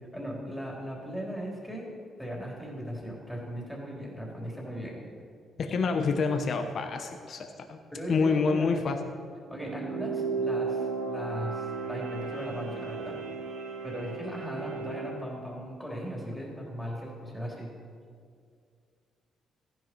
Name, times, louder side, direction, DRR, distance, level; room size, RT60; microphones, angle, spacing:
voice 1, 0.1-1.9 2.2-5.0 7.9-8.7 9.5-13.2 13.8-17.7, equal, ahead, -3 dB, 3.6 m, -38 dB
voice 2, 5.6-7.8 8.1-9.0, left 4 dB, 55° left, 6 dB, 1.0 m, -27 dB
sound 1, 9.5-15.2, right 4 dB, 90° right, 2.3 m, -34 dB
14.5 x 10.5 x 4.6 m, 2.2 s
cardioid pair, 90°, 0 cm